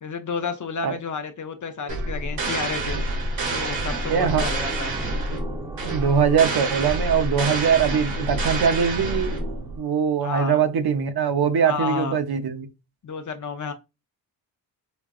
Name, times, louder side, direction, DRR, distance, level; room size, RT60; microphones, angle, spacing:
voice 1, 0.0-3.0 3.5-4.9 10.2-10.6 11.6-12.2 13.0-13.7, left 5 dB, 40° left, 0.6 m, -31 dB
sound 1, 1.8-10.1, right 1 dB, 10° right, 0.8 m, -42 dB
sound 2, 1.9-9.8, right 2 dB, 80° right, 1.8 m, -28 dB
voice 2, 4.1-4.5 5.9-9.3 9.8-12.7, right 7 dB, 55° right, 0.8 m, -22 dB
5.1 x 2.3 x 2.4 m
cardioid pair, 75°, 45 cm